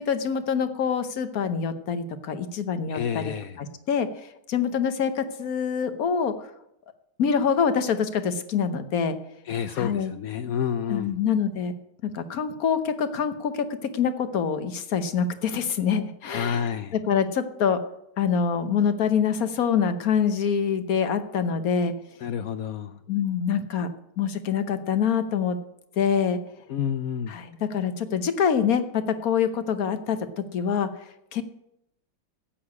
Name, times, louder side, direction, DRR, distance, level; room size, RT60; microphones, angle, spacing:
voice 1, 0.0-4.1 4.5-6.3 7.2-9.2 9.8-10.1 10.9-11.7 12.0-17.8 18.2-21.9 23.1-25.6 26.0-26.4 27.3-30.9 31.3-31.4, left 7 dB, 55° left, 10 dB, 1.2 m, -25 dB
voice 2, 2.9-3.6 9.5-11.1 16.3-16.9 22.2-23.0 26.7-27.3, left 8 dB, 85° left, 11 dB, 0.7 m, -29 dB
9.8 x 8.3 x 9.5 m, 0.80 s
omnidirectional pair, 2.2 m